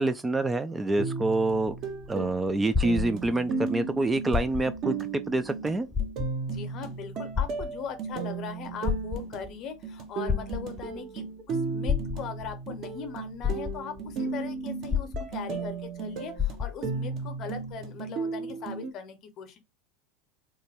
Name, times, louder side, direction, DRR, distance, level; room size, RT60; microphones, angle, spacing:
voice 1, 0.0-1.7 2.1-4.9 5.3-5.9, right 2 dB, 15° right, 0.3 m, -26 dB
sound 1, 1.0-18.9, right 5 dB, 45° right, 0.6 m, -35 dB
sound 2, 1.5-3.6 4.2-4.9 5.3-5.4 5.9-6.6 7.3-8.2 8.7-9.5 10.3-11.0 11.9-12.6 13.1-13.2 13.4-14.1 14.9-15.7 16.0-16.1 16.4-17.0 17.7-17.8, left 6 dB, 10° left, 0.7 m, -30 dB
voice 2, 6.5-19.6, left 6 dB, 45° left, 0.8 m, -40 dB
3.1 x 2.1 x 3.3 m
figure-of-eight pair, 80°, 0 cm